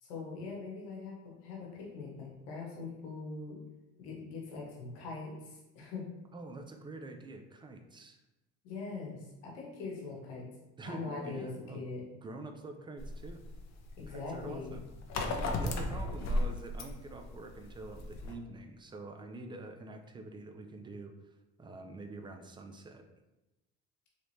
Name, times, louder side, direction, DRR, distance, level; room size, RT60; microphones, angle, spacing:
voice 1, 0.0-3.6 4.0-6.0 8.6-10.5 10.8-12.0 14.0-14.8, left 4 dB, 90° left, -2 dB, 1.1 m, -42 dB
voice 2, 6.3-8.2 10.8-11.8 12.2-13.4 14.1-14.8 15.4-23.1, right 2 dB, 15° right, 6 dB, 0.4 m, -46 dB
sound 1, 13.0-18.3, left 1 dB, 55° left, 0.6 m, -35 dB
3.3 x 3.0 x 2.7 m, 0.99 s
supercardioid pair, 85°, 33 cm